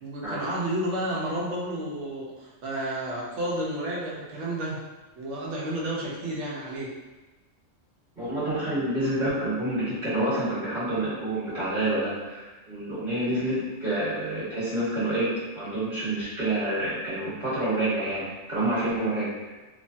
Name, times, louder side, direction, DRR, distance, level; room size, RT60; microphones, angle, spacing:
voice 1, 0.0-4.8 5.2-6.9, right 1 dB, 70° right, -5 dB, 1.0 m, -31 dB
voice 2, 8.2-19.5, right 1 dB, 40° right, -12 dB, 1.3 m, -28 dB
3.0 x 2.1 x 2.6 m, 1.2 s
omnidirectional pair, 1.3 m